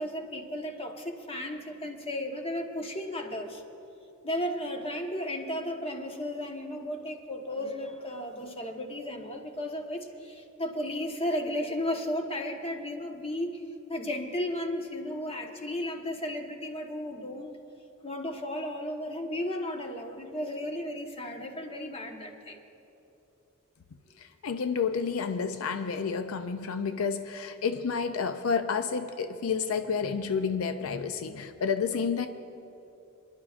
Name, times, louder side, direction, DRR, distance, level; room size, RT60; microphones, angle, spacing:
voice 1, 0.0-3.6 4.2-13.6 13.9-17.5 18.0-22.6, left 1 dB, 30° left, 3 dB, 1.2 m, -34 dB
voice 2, 24.2-32.3, left 6 dB, 85° left, 9 dB, 0.5 m, -30 dB
28.0 x 11.0 x 2.5 m, 2.9 s
head